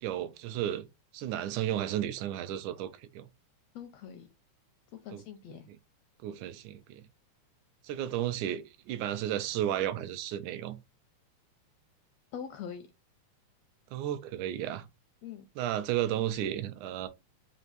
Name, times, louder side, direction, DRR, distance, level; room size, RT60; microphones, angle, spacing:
voice 1, 0.0-0.9 1.1-3.3 5.1-5.2 5.7-5.8 6.2-7.0 7.8-10.8 13.9-14.9 15.6-17.1, right 11 dB, 85° right, 2.0 m, -33 dB
voice 2, 3.7-4.3 4.9-5.7 12.3-12.9 15.2-15.4, left 8 dB, 80° left, 1.5 m, -43 dB
5.3 x 2.5 x 3.9 m
omnidirectional pair, 3.5 m